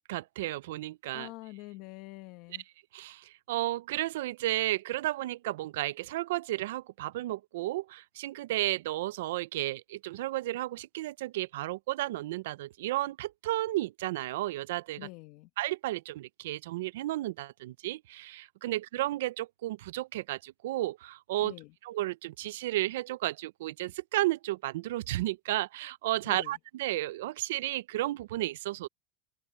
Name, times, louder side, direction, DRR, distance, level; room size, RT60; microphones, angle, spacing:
voice 1, 0.1-1.3 2.9-15.1 15.6-21.5 21.8-28.9, right 16 dB, 85° right, 0.5 m, -33 dB
voice 2, 1.1-2.6 15.0-15.5 21.4-21.7 26.3-26.6, left 20 dB, 55° left, 1.4 m, -45 dB
supercardioid pair, 145°, 0 cm